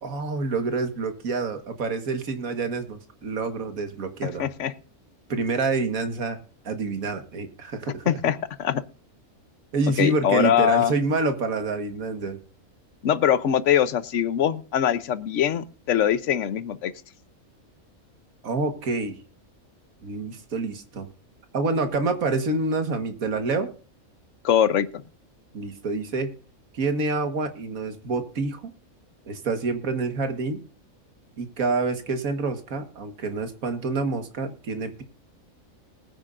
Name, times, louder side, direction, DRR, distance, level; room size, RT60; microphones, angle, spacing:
voice 1, 0.0-4.5 5.3-6.4 6.7-8.0 9.7-12.4 18.4-19.2 20.0-21.1 21.5-23.7 25.5-26.3 26.7-28.7 29.3-30.6 31.4-35.0, right 3 dB, 75° right, 8 dB, 1.9 m, -27 dB
voice 2, 4.2-4.7 8.1-8.8 10.0-10.9 13.0-16.9 24.4-24.9, left 9 dB, 60° left, 14 dB, 1.1 m, -22 dB
20.5 x 9.4 x 2.6 m, 0.38 s
omnidirectional pair, 1.5 m